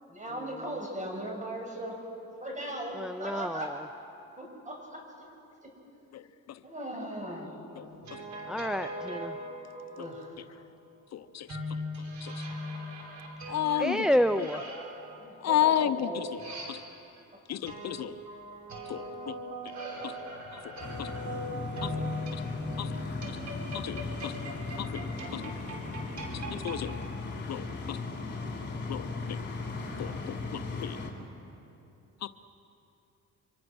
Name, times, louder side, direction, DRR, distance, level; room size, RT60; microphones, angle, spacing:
voice 1, 0.1-2.0 2.4-3.9 4.4-5.3 5.6-5.7 6.6-7.6 9.8-10.4 15.2-16.3 21.6-21.7 24.6-24.7 25.1-25.5, right 1 dB, 25° right, 1 dB, 6.4 m, -38 dB
voice 2, 2.9-3.7 8.5-9.4 13.5-13.6 13.8-14.6, equal, ahead, 10 dB, 0.5 m, -29 dB
sound 1, 7.7-10.3 11.5-17.2 17.6-26.8, equal, 65° right, 4.5 m, -40 dB
voice 3, 11.1-11.5 12.2-12.3 13.5-14.0 15.4-16.0 16.7-16.8 17.5-18.1 18.9-19.0 20.0-20.1 21.0-21.1 21.8-21.9 22.8-22.9 23.8-24.4 24.8-25.0 25.3-25.6 26.5-27.0 27.5-28.0 28.9-29.4 30.0-30.1 30.8-31.0 32.2-32.3, left 10 dB, 60° left, 12 dB, 0.7 m, -31 dB
sound 2, 20.8-31.1, left 3 dB, 35° left, 4.3 m, -37 dB
26.0 x 25.0 x 6.3 m, 2.8 s
cardioid pair, 90°, 30 cm